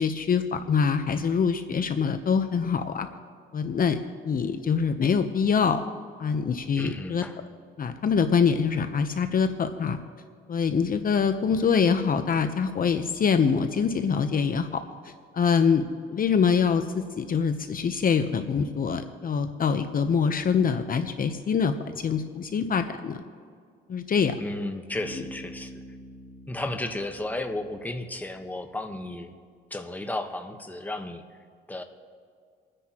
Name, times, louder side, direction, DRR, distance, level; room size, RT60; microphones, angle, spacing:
voice 1, 0.0-3.1 3.5-4.0 4.2-5.8 6.2-7.2 7.8-10.0 10.5-15.8 16.1-23.2 23.9-24.3, left 6 dB, 45° left, 8 dB, 0.8 m, -24 dB
voice 2, 6.8-7.4 24.4-25.7 26.5-29.3 29.7-31.4 31.7-31.8, left 2 dB, 10° left, 5 dB, 1.2 m, -33 dB
Bass guitar, 24.9-28.6, equal, 80° right, 3.8 m, -46 dB
29.0 x 9.9 x 3.0 m, 2.1 s
cardioid pair, 90°, 20 cm